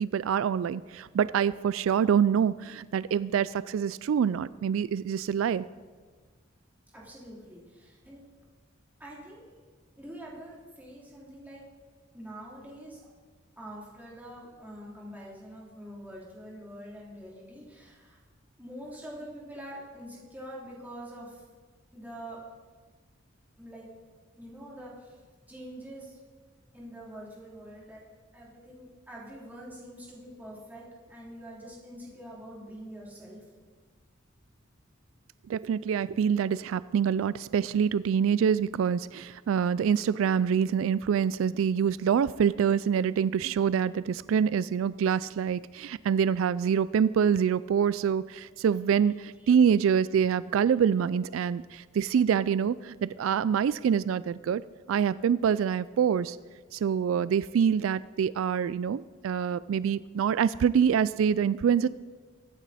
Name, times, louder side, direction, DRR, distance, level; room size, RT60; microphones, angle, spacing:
voice 1, 0.0-5.7 35.5-54.6 54.9-56.4 56.7-61.9, right 7 dB, 85° right, 18 dB, 0.3 m, -26 dB
voice 2, 6.9-8.2 9.0-9.4 10.0-11.7 12.1-13.0 13.6-18.2 18.6-21.4 21.9-22.4 23.6-23.8 24.4-25.2 25.5-26.2 26.7-28.0 28.3-30.8 31.1-33.4 49.4-49.5, equal, 10° right, -5 dB, 3.3 m, -45 dB
22.5 x 9.2 x 4.2 m, 1.4 s
head